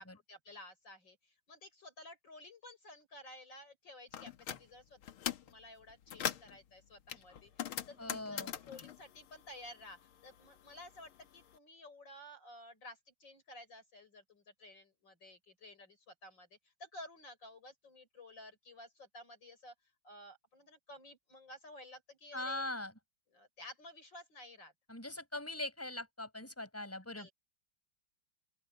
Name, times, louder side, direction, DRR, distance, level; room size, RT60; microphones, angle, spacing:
voice 1, 0.0-19.7 20.0-22.7 23.3-24.7 27.2-27.3, left 1 dB, 60° left, 6.9 m, -53 dB
sound 1, 4.1-4.6 5.0-5.5 5.9-6.6 7.1-10.0 10.3-11.4, left 10 dB, 85° left, 2.0 m, -41 dB
voice 2, 8.0-8.5 22.3-22.9 24.9-27.3, left 2 dB, 5° left, 5.8 m, -41 dB
open air
omnidirectional pair, 2.2 m